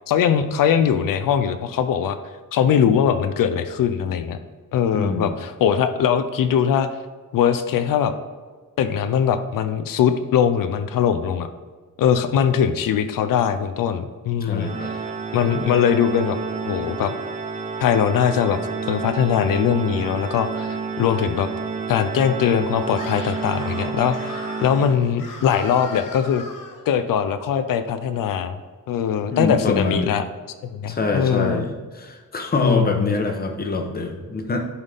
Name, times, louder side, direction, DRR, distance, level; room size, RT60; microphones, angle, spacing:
voice 1, 0.1-2.2 2.5-4.4 4.7-6.9 7.3-8.1 8.8-11.5 12.0-14.9 15.3-16.4 16.6-17.1 17.8-18.6 18.9-21.5 21.9-26.4 26.9-28.6 28.9-30.2 30.7-31.6 32.6-33.1, left 8 dB, 90° left, 10 dB, 0.6 m, -21 dB
voice 2, 4.9-5.4 14.4-14.9 29.3-30.1 30.9-34.6, left 3 dB, 30° left, 4 dB, 0.8 m, -25 dB
Organ, 14.6-25.3, right 5 dB, 25° right, 0.4 m, -30 dB
Screaming, 22.9-26.8, left 3 dB, 75° left, 1.2 m, -38 dB
11.0 x 4.1 x 3.4 m, 1.5 s
wide cardioid pair, 160°, 32 cm